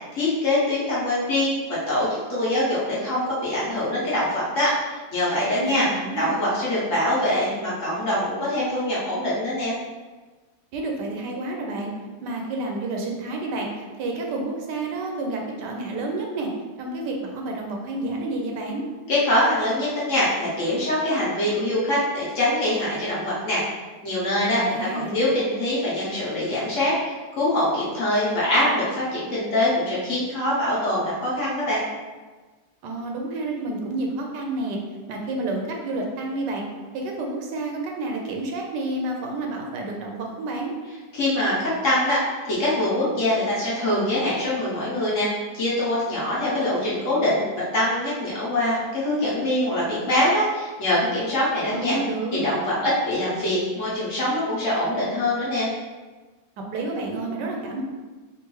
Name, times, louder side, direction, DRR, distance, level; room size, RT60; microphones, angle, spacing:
voice 1, 0.1-5.8 6.2-9.8 19.1-23.6 24.0-26.9 27.4-31.8 41.1-45.3 45.5-47.4 47.7-51.9 52.3-55.7, left 1 dB, 55° left, -8 dB, 1.1 m, -24 dB
voice 2, 5.6-6.3 10.7-11.9 12.2-16.5 16.8-18.8 24.6-25.2 32.8-34.8 35.1-36.6 36.9-40.7 51.7-52.4 56.7-57.8, right 2 dB, 80° right, 1 dB, 1.2 m, -29 dB
3.7 x 2.5 x 3.0 m, 1.3 s
omnidirectional pair, 1.9 m